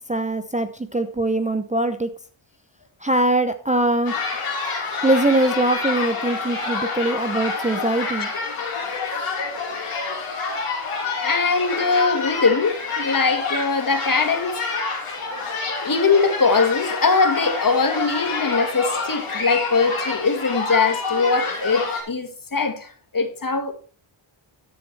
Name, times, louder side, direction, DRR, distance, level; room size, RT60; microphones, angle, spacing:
voice 1, 0.1-2.1 3.0-4.2 5.0-8.3, right 1 dB, 15° right, 0.7 m, -22 dB
sound 1, 4.0-22.0, left 4 dB, 80° left, 3.2 m, -28 dB
voice 2, 11.2-14.6 15.8-23.7, left 4 dB, 40° left, 1.7 m, -21 dB
13.5 x 7.5 x 3.3 m
cardioid pair, 65°, 50 cm